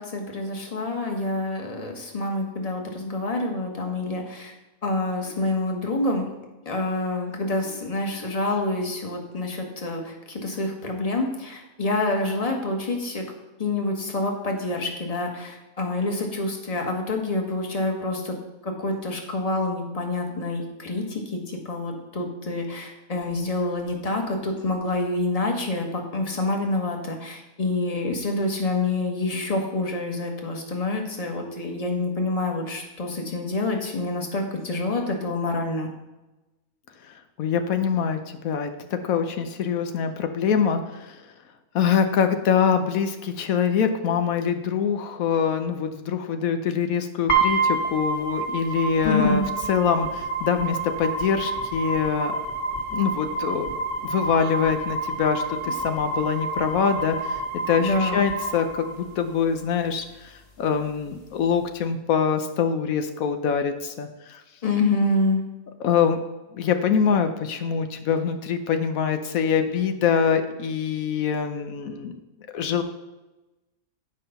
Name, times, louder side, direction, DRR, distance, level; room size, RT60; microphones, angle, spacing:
voice 1, 0.0-4.5 4.8-6.3 6.6-13.3 13.6-18.3 18.6-35.9 49.0-49.4 57.8-58.2 64.6-65.4, left 2 dB, 30° left, 2 dB, 1.4 m, -27 dB
voice 2, 37.4-38.7 39.0-41.2 41.7-49.4 49.7-52.4 52.9-53.7 54.1-57.4 57.7-60.3 60.6-64.4 65.8-66.2 66.5-72.1 72.5-72.8, left 7 dB, 85° left, 7 dB, 1.2 m, -24 dB
sound 1, 47.3-59.3, right 3 dB, 55° left, 2.0 m, -28 dB
9.8 x 5.4 x 5.6 m, 1.0 s
omnidirectional pair, 1.4 m